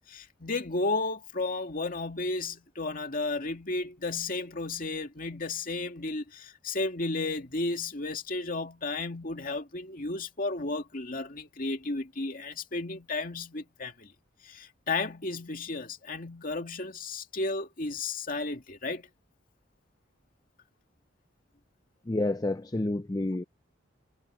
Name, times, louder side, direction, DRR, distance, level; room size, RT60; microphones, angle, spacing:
voice 1, 0.1-14.1 14.4-19.1, left 3 dB, 45° left, 2.3 m, -33 dB
voice 2, 22.1-23.4, left 2 dB, 20° left, 0.5 m, -29 dB
head